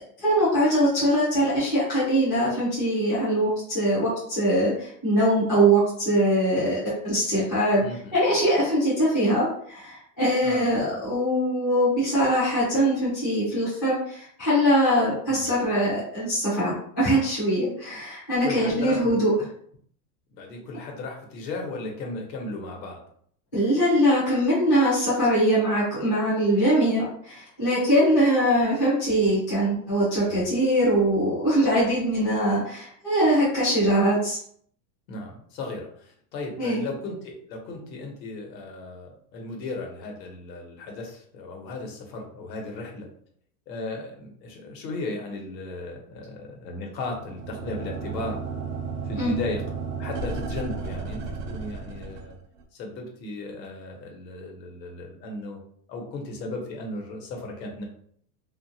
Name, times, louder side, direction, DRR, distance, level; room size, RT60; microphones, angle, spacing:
voice 1, 0.2-7.8 8.1-19.3 23.5-34.4 36.6-36.8 49.2-49.4, equal, 15° left, -12 dB, 0.3 m, -22 dB
voice 2, 7.8-8.2 10.4-10.8 15.3-15.5 18.4-19.3 20.3-23.0 30.3-30.5 35.1-43.1 43.7-48.4 49.0-49.6 50.0-52.4 52.7-55.6 55.9-57.8, left 2 dB, 80° left, 1 dB, 1.0 m, -36 dB
sound 1, 47.1-52.6, right 5 dB, 50° right, 0.5 m, -33 dB
2.7 x 2.5 x 2.7 m, 0.63 s
supercardioid pair, 175°, 50 cm